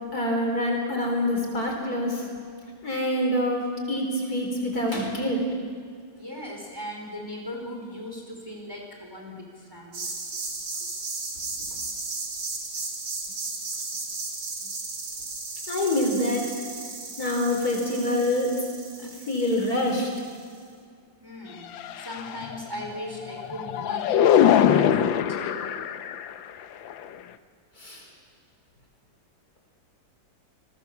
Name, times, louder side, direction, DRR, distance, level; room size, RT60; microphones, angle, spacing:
voice 1, 0.1-2.3 2.8-5.4 15.7-16.5 17.2-18.5 19.0-20.1 27.8-28.1, left 1 dB, 50° left, 1 dB, 4.6 m, -26 dB
voice 2, 6.2-10.1 21.2-21.7 22.0-25.9, left 1 dB, 10° right, 0 dB, 4.6 m, -38 dB
sound 1, 9.9-20.4, right 3 dB, 75° right, 3.5 m, -35 dB
sound 2, 21.6-22.6 23.2-26.4 26.9-27.2, left 9 dB, 90° left, 1.6 m, -22 dB
30.0 x 21.0 x 7.1 m, 2.2 s
omnidirectional pair, 2.0 m